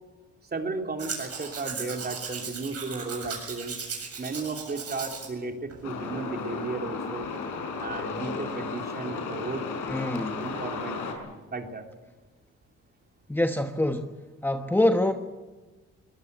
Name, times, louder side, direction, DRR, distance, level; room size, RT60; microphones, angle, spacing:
voice 1, 0.5-3.7 4.2-7.3 7.8-9.6 10.4-11.0 11.5-11.9, right 3 dB, 30° right, 3 dB, 3.2 m, -34 dB
Domestic sounds home sounds, 1.0-5.3 5.7-5.8, right 5 dB, 55° right, 7.6 m, -37 dB
Truck, 5.8-11.1, left 4 dB, 85° left, 5.4 m, -34 dB
voice 2, 9.9-10.5 13.3-14.1 14.4-15.1, left 1 dB, 5° left, 6 dB, 1.2 m, -25 dB
23.5 x 19.0 x 8.2 m, 1.2 s
cardioid pair, 90°, 30 cm